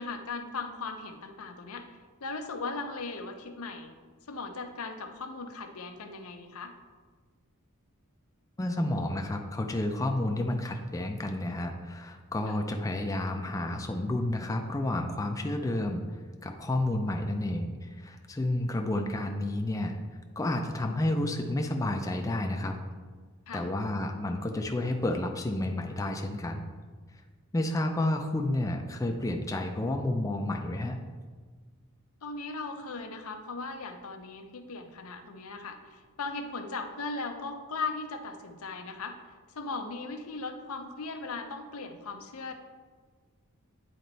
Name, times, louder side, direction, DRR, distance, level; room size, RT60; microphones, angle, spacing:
voice 1, 0.0-1.9 2.2-3.9 4.3-6.7 12.5-12.6 23.5-23.7 32.2-39.2 39.5-42.5, left 3 dB, 80° left, 6 dB, 0.7 m, -38 dB
voice 2, 8.6-16.0 16.4-20.0 20.4-22.8 23.5-26.7 27.5-31.0, left 1 dB, 15° left, 3 dB, 0.4 m, -30 dB
9.2 x 4.3 x 4.0 m, 1.5 s
head